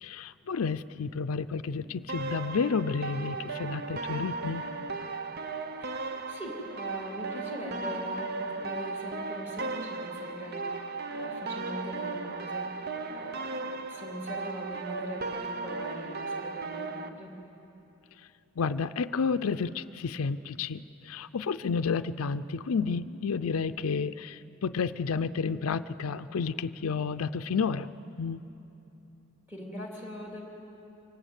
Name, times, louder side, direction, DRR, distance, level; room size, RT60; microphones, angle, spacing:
voice 1, 0.0-4.6 18.6-27.9 28.2-28.4, left 5 dB, 80° left, 12 dB, 0.5 m, -31 dB
sound 1, 2.1-17.1, right 3 dB, 50° right, 0.9 m, -36 dB
voice 2, 5.8-17.3 29.5-30.4, equal, 10° right, -1 dB, 2.8 m, -42 dB
25.5 x 18.5 x 8.1 m, 2.9 s
head